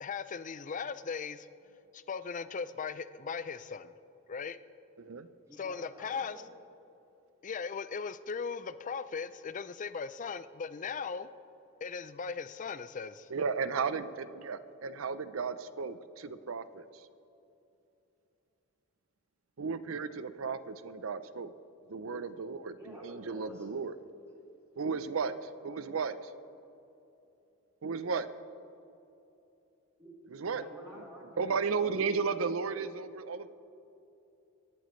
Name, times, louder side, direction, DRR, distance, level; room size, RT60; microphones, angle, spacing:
voice 1, 0.0-1.5 1.9-3.9 4.3-4.6 5.6-6.4 7.4-11.3 11.8-13.3, left 5 dB, 40° left, 14 dB, 0.4 m, -38 dB
voice 2, 5.4-6.4 22.6-23.7 30.0-30.1 30.5-31.6, equal, 15° right, -6 dB, 3.9 m, -50 dB
voice 3, 13.3-16.8 19.6-21.5 21.9-23.9 24.8-25.3 25.6-26.1 27.8-28.3 30.4-30.6 31.4-33.5, right 5 dB, 80° right, 13 dB, 0.6 m, -34 dB
23.5 x 11.5 x 3.2 m, 2.9 s
head